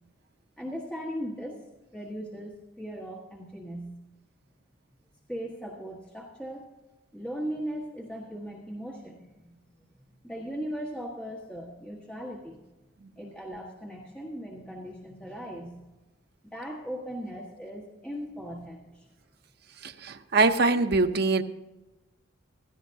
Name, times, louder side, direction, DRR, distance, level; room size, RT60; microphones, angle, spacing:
voice 1, 0.6-1.6 1.9-3.9 5.3-6.7 7.1-9.6 10.2-12.6 13.2-15.8 16.5-19.1, equal, 5° left, -4 dB, 1.4 m, -38 dB
voice 2, 19.8-21.4, right 3 dB, 50° right, 7 dB, 0.7 m, -23 dB
16.5 x 14.5 x 2.7 m, 1.1 s
head